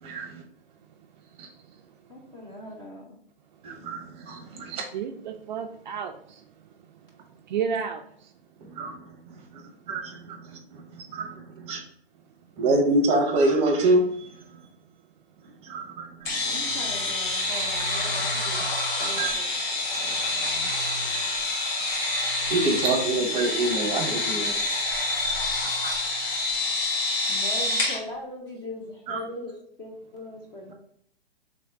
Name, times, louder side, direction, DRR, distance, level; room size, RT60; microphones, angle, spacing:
voice 1, 0.0-0.4 1.4-1.5 3.6-4.8 8.6-11.8 12.6-14.6 15.6-16.5 19.2-19.3 22.5-24.5 29.1-29.2, right 2 dB, 20° right, 2 dB, 0.8 m, -26 dB
voice 2, 2.1-3.2 16.3-18.7 19.0-19.6 19.9-20.7 26.9-30.7, left 1 dB, 15° left, -1 dB, 0.6 m, -40 dB
voice 3, 4.9-6.4 7.3-8.3, right 7 dB, 50° right, 5 dB, 0.4 m, -32 dB
sound 1, 16.2-28.0, left 2 dB, 60° left, 1.7 m, -27 dB
3.4 x 3.2 x 3.9 m, 0.65 s
hypercardioid pair, 145°, 31 cm